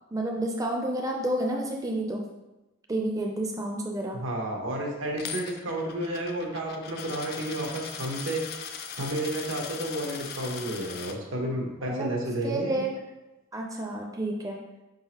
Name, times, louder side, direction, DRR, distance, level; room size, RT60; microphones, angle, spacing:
voice 1, 0.1-2.2 2.9-4.2 11.8-12.1 12.4-12.9 13.5-14.6, right 1 dB, 15° right, 0 dB, 0.4 m, -30 dB
voice 2, 4.1-8.4 9.0-12.8, right 1 dB, 85° right, 0 dB, 1.0 m, -31 dB
Coin (dropping), 5.2-11.1, left 7 dB, 55° left, 0.4 m, -39 dB
5.0 x 3.7 x 2.8 m, 1.0 s
head